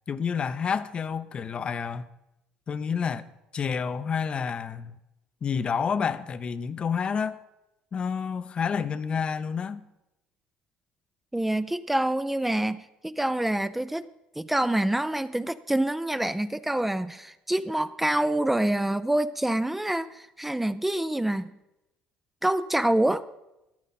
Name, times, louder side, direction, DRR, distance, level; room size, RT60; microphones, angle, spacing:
voice 1, 0.1-2.1 2.7-4.9 5.4-7.4 7.9-9.8, left 6 dB, 40° left, 0.7 m, -29 dB
voice 2, 11.3-14.1 14.4-21.5 22.4-23.2, right 1 dB, 5° right, 0.4 m, -26 dB
14.5 x 11.0 x 4.2 m
supercardioid pair, 80°, 3 cm